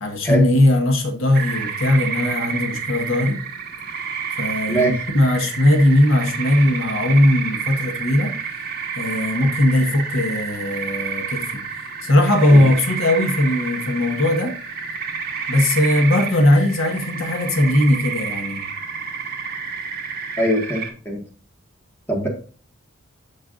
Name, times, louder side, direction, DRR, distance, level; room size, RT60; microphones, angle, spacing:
voice 1, 0.0-3.5 4.4-8.3 9.0-11.6 12.0-14.6 15.5-18.6, left 1 dB, 70° left, 1.4 m, -18 dB
sound 1, 1.3-20.9, right 6 dB, 45° right, 1.7 m, -29 dB
voice 2, 20.4-21.2 22.1-22.3, right 1 dB, 10° left, 1.7 m, -21 dB
13.5 x 4.7 x 2.5 m
head